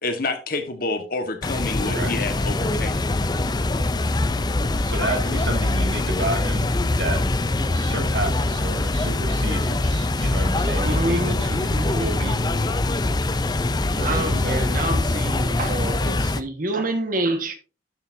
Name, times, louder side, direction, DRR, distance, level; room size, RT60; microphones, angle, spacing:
voice 1, 0.0-3.0, left 3 dB, 50° left, 1.4 m, -28 dB
sound 1, 1.4-16.4, left 2 dB, 20° left, 0.5 m, -23 dB
voice 2, 1.8-2.1 4.9-7.2 7.7-11.7 11.9-12.3 13.9-14.7, right 2 dB, 65° right, 2.1 m, -31 dB
voice 3, 10.7-13.1 14.0-17.5, right 2 dB, 50° right, 1.5 m, -28 dB
12.0 x 7.0 x 2.7 m
head